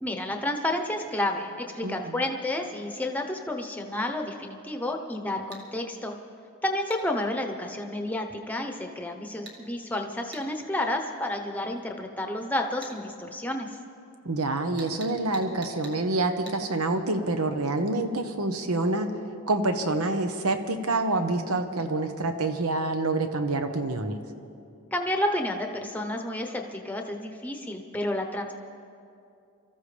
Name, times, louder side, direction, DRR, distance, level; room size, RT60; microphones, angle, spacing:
voice 1, 0.0-6.1 6.6-13.8 24.9-28.5, left 1 dB, 5° left, 3 dB, 0.9 m, -30 dB
voice 2, 1.8-2.2 14.2-19.1 19.5-24.2, right 2 dB, 85° right, 7 dB, 1.1 m, -27 dB
sound 1, 5.5-5.7 6.9-7.0 9.5-9.6 10.3-10.5 12.8-13.0 14.8-16.0 16.5-16.6, right 3 dB, 50° right, 1.7 m, -44 dB
25.0 x 14.0 x 3.4 m, 2.6 s
head